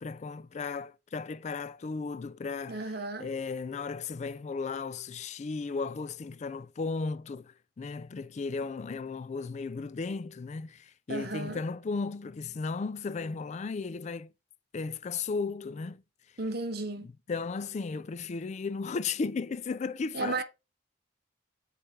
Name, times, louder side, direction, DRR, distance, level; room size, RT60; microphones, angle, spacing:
voice 1, 0.0-2.8 3.2-14.3 14.7-16.0 17.3-20.4, left 4 dB, 40° left, 0.3 m, -35 dB
voice 2, 2.7-3.3 11.1-11.6 16.4-17.1 20.1-20.4, right 2 dB, 55° right, 0.9 m, -34 dB
7.7 x 3.3 x 3.6 m
head